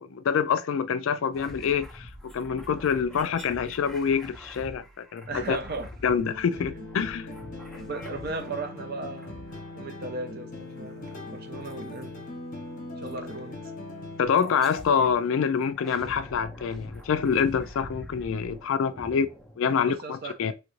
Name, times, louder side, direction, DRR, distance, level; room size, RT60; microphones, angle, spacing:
voice 1, 0.0-5.6 6.0-7.3 14.2-19.3 19.6-20.5, left 6 dB, 60° left, 0.3 m, -26 dB
sound 1, 1.3-8.8 9.2-10.0 11.7-12.1 13.1-13.2 14.4-15.2 15.6-20.0, left 1 dB, ahead, 0.6 m, -45 dB
voice 2, 5.3-5.9 6.6-6.7 7.7-9.3 9.7-12.3 13.0-13.7 19.7-20.5, right 3 dB, 45° right, 0.6 m, -36 dB
sound 2, 6.3-14.3, left 2 dB, 35° left, 0.8 m, -40 dB
3.1 x 2.5 x 3.0 m
head